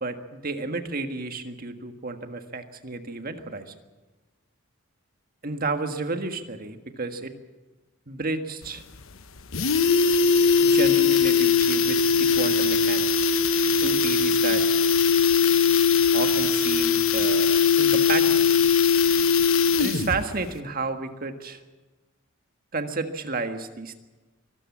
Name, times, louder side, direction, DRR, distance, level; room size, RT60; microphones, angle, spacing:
voice 1, 0.0-3.7 5.4-7.3 8.1-8.8 10.6-13.3 13.8-14.6 16.1-18.5 19.8-21.6 22.7-24.0, right 3 dB, 45° right, 7 dB, 1.6 m, -32 dB
sound 1, 8.6-8.7 9.0-9.1 9.4-20.2 20.5-20.6, left 5 dB, 70° left, 1.1 m, -20 dB
24.0 x 13.5 x 8.6 m, 1.2 s
head